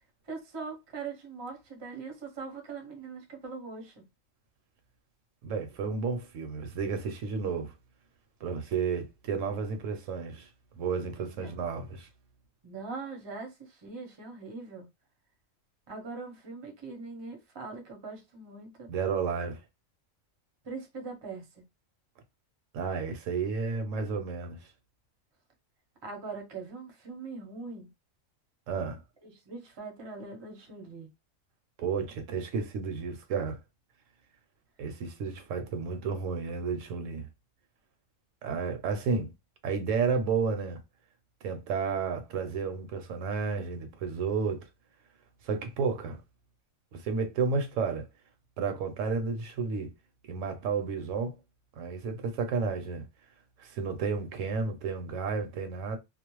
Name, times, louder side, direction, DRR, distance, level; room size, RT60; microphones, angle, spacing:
voice 1, 0.3-4.0 11.2-11.6 12.6-14.9 15.9-18.9 20.6-21.4 26.0-27.9 29.2-31.1, right 4 dB, 30° right, 0.5 m, -41 dB
voice 2, 5.4-7.7 8.4-10.5 10.8-12.1 18.9-19.6 22.7-24.7 28.7-29.0 31.8-33.6 34.8-37.3 38.4-39.3 39.6-40.8 41.4-44.7 45.4-46.2 46.9-48.1 48.6-49.9 50.3-51.3 51.8-53.1 53.6-56.0, right 5 dB, 75° right, 0.9 m, -32 dB
2.4 x 2.0 x 3.0 m
omnidirectional pair, 1.4 m